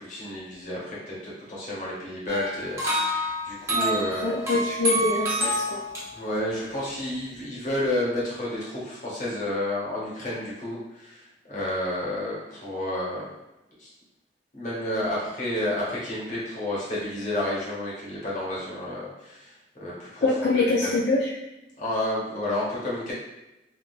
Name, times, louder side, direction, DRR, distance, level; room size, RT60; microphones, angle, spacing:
voice 1, 0.0-4.3 6.1-13.3 13.8-13.9 14.5-20.3 20.8-20.9 21.8-23.1, left 1 dB, 45° left, -7 dB, 1.1 m, -31 dB
sound 1, 2.3-6.0, equal, 15° right, 0.7 m, -27 dB
voice 2, 3.7-5.8 20.2-21.3, left 3 dB, 75° left, -5 dB, 0.4 m, -25 dB
3.6 x 2.3 x 2.4 m, 0.96 s
head